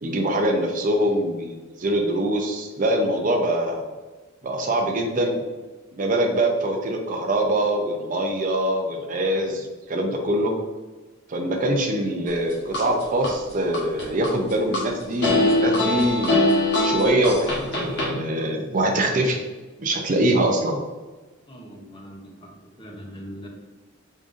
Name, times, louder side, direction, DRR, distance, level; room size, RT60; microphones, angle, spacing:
voice 1, 0.0-3.8 4.4-5.4 5.9-10.5 11.3-16.4 16.8-19.4 19.8-20.8, right 1 dB, 40° right, 3 dB, 0.5 m, -23 dB
sound 1, 12.3-13.3 13.7-14.8 15.2-18.1, left 1 dB, 55° left, 1.2 m, -22 dB
voice 2, 21.5-23.5, equal, 25° left, 0 dB, 0.8 m, -41 dB
5.2 x 3.6 x 2.5 m, 1.2 s
head